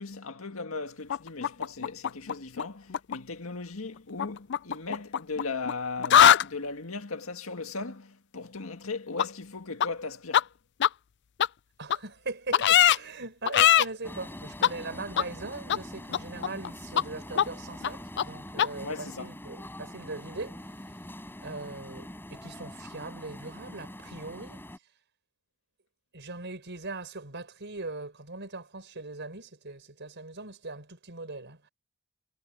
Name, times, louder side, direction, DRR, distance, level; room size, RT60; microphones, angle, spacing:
voice 1, 0.0-10.5 18.8-19.3, left 3 dB, 85° left, 1.9 m, -37 dB
sound 1, 1.1-2.6 2.9-3.2 4.2-5.7 6.0-6.4 9.2-9.3 9.8-9.9 10.3-10.4 10.8-10.9 11.4-11.5 11.9-12.0 12.5-13.0 13.5-13.8 14.6-14.7 15.2-15.3 15.7-15.8 16.1-16.7 17.0-17.1 17.4-17.5 17.8-17.9 18.2-18.3 18.6-18.7, left 10 dB, 55° left, 0.5 m, -21 dB
voice 2, 11.8-21.0 21.4-24.6 26.1-31.7, right 3 dB, 60° right, 5.5 m, -40 dB
sound 2, 14.0-24.8, left 1 dB, 10° left, 7.6 m, -44 dB
head